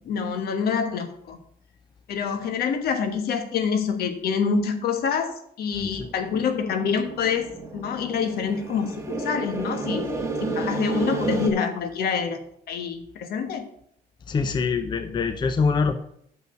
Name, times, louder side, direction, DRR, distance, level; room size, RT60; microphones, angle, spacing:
voice 1, 0.0-1.4 2.1-10.0 10.4-12.4 12.7-13.7, left 6 dB, 65° left, 8 dB, 1.2 m, -26 dB
sound 1, 6.0-11.5, right 3 dB, 15° right, 1.4 m, -31 dB
voice 2, 14.3-16.0, left 5 dB, 25° left, 9 dB, 0.6 m, -24 dB
6.3 x 5.3 x 6.8 m, 0.68 s
cardioid pair, 110°, 17 cm